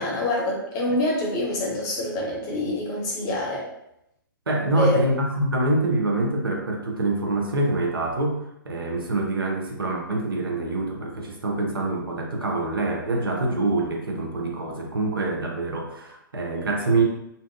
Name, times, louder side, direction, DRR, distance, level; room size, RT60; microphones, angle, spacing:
voice 1, 0.0-3.6 4.6-5.0, left 1 dB, 30° left, -3 dB, 0.9 m, -26 dB
voice 2, 4.5-17.0, right 2 dB, 80° right, 1 dB, 0.7 m, -25 dB
2.6 x 2.2 x 2.4 m, 0.81 s
figure-of-eight pair, 120°, 12 cm